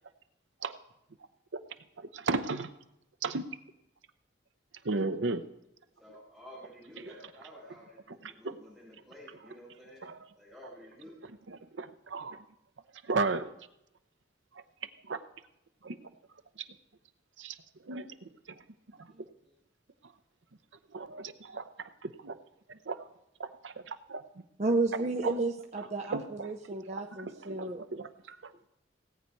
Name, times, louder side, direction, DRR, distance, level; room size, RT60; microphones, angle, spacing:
voice 1, 2.0-2.7 3.2-3.4 4.8-5.4 8.2-8.6 10.0-10.2 11.5-12.4 13.0-13.5 15.1-15.2 15.8-16.0 17.4-17.5 17.9-18.3 20.9-22.4 22.7-23.0 23.4-24.2 25.2-25.3 26.1-26.5 27.2-28.7, right 3 dB, 75° right, 10 dB, 0.7 m, -35 dB
voice 2, 6.0-11.4 19.1-19.2 19.4-19.5, equal, 5° right, -6 dB, 5.0 m, -52 dB
voice 3, 24.6-27.8, right 2 dB, 35° right, 2 dB, 0.6 m, -32 dB
17.5 x 8.3 x 4.6 m, 0.83 s
head